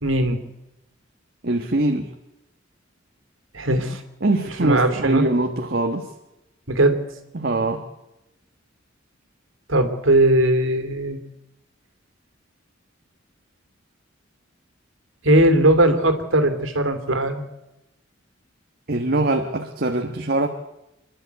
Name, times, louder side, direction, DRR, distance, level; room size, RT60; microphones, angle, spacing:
voice 1, 0.0-0.4 3.5-4.0 4.6-5.2 6.7-7.0 9.7-11.2 15.2-17.4, right 1 dB, 85° right, 8 dB, 2.7 m, -19 dB
voice 2, 1.4-2.1 4.2-6.1 7.3-7.8 18.9-20.5, right 2 dB, 50° right, 4 dB, 1.4 m, -22 dB
28.0 x 11.5 x 8.1 m, 0.92 s
head